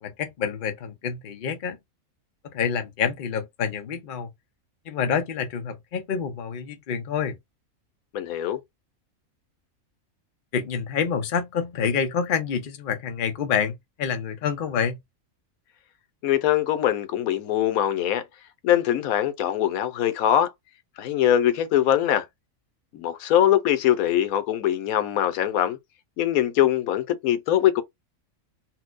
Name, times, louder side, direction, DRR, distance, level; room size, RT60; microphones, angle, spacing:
voice 1, 0.0-1.8 2.5-4.3 4.9-7.4 10.5-15.0, left 7 dB, 50° left, 0.7 m, -27 dB
voice 2, 8.1-8.6 16.2-18.2 18.6-20.5 21.0-22.3 22.9-25.8 26.2-27.8, left 11 dB, 90° left, 1.1 m, -22 dB
4.3 x 2.1 x 2.5 m
omnidirectional pair, 1.4 m